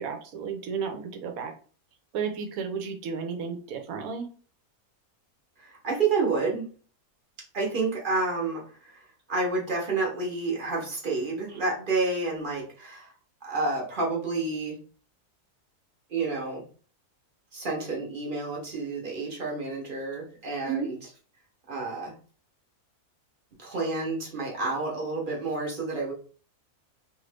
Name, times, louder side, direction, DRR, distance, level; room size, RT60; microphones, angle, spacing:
voice 1, 0.0-1.5 2.1-4.3 20.7-20.9, right 6 dB, 70° right, 4 dB, 1.1 m, -33 dB
voice 2, 5.6-6.7 7.5-13.1 13.4-14.8 16.1-16.6 17.5-21.0 21.7-22.1 23.6-26.1, right 3 dB, 40° right, -2 dB, 0.9 m, -29 dB
2.8 x 2.5 x 3.3 m, 0.41 s
omnidirectional pair, 1.6 m